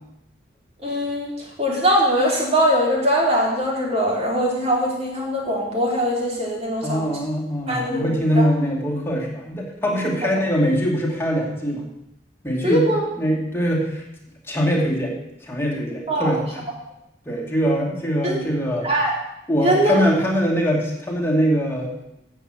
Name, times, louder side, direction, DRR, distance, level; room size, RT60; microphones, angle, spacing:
voice 1, 0.8-1.3 1.6-7.0 7.7-8.1 8.4-8.5 12.6-13.0 16.1-16.3 18.2-18.4 18.8-19.1 19.6-19.9, equal, 35° right, -2 dB, 3.2 m, -21 dB
voice 2, 6.8-11.9 12.4-12.9 13.2-14.0 14.5-15.1 15.4-16.7 17.3-18.9 19.5-22.0, equal, 15° left, -2 dB, 2.4 m, -22 dB
8.9 x 7.4 x 7.8 m, 0.84 s
head